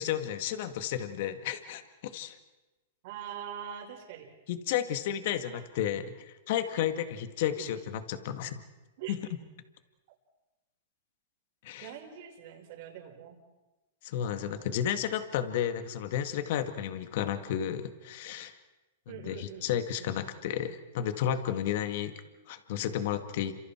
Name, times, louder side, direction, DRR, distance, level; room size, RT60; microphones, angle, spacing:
voice 1, 0.0-2.4 4.5-8.6 9.1-9.2 11.6-11.9 14.0-18.5 19.2-22.1 22.5-23.5, left 10 dB, 55° left, 9 dB, 2.0 m, -32 dB
voice 2, 3.0-4.3 5.5-5.6 7.5-7.9 9.0-9.2 11.8-13.4 14.2-14.8 19.1-20.2, right 9 dB, 55° right, 1 dB, 6.1 m, -44 dB
30.0 x 26.5 x 4.7 m, 1.1 s
hypercardioid pair, 135°, 0 cm